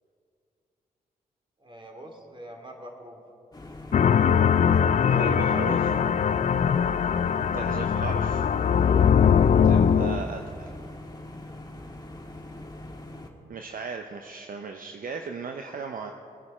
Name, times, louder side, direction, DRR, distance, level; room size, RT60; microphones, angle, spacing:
voice 1, 1.6-3.2 5.0-6.1, right 1 dB, 30° right, 2 dB, 2.7 m, -44 dB
Humming machinery, 3.5-13.3, left 1 dB, 25° left, 1.8 m, -42 dB
sound 1, 3.9-10.2, left 7 dB, 45° left, 0.4 m, -21 dB
voice 2, 5.1-5.9 7.5-8.4 9.6-10.7 13.5-16.1, right 5 dB, 60° right, 4 dB, 0.8 m, -36 dB
20.5 x 9.8 x 4.3 m, 2.6 s
supercardioid pair, 45°, 17 cm